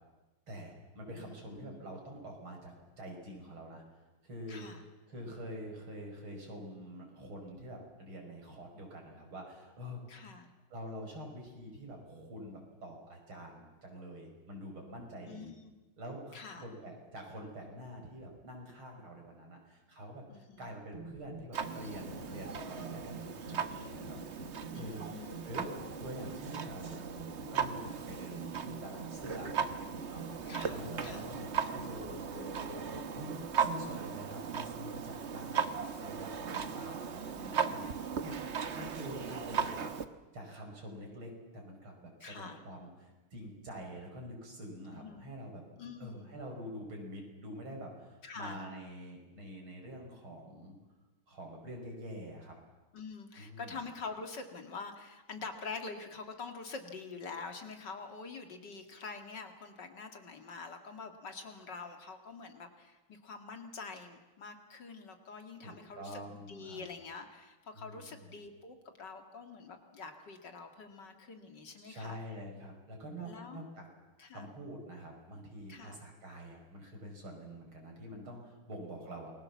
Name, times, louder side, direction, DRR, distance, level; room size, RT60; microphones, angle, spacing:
voice 1, 0.5-3.8 4.2-10.3 10.7-15.5 16.0-24.2 24.7-30.3 30.7-33.3 33.6-38.0 38.2-39.9 40.3-45.6 46.0-50.8 51.3-52.5 53.4-53.8 65.6-66.9 67.7-68.3 71.8-73.8 74.3-79.3, equal, 75° right, 1 dB, 6.6 m, -46 dB
voice 2, 1.1-1.8 4.5-4.8 10.1-10.5 15.3-15.7 16.3-16.6 20.3-20.7 24.7-25.4 30.4-31.3 42.2-42.6 44.9-45.2 45.8-46.3 48.2-48.6 52.9-72.4 73.2-73.6 74.2-74.5 75.7-76.0, left 4 dB, 55° left, 6 dB, 2.7 m, -46 dB
sound 1, 20.9-33.8, right 1 dB, 35° left, 3.5 m, -48 dB
Clock, 21.5-40.1, right 7 dB, 40° right, 1.2 m, -38 dB
28.5 x 21.5 x 7.3 m, 1.1 s
omnidirectional pair, 2.3 m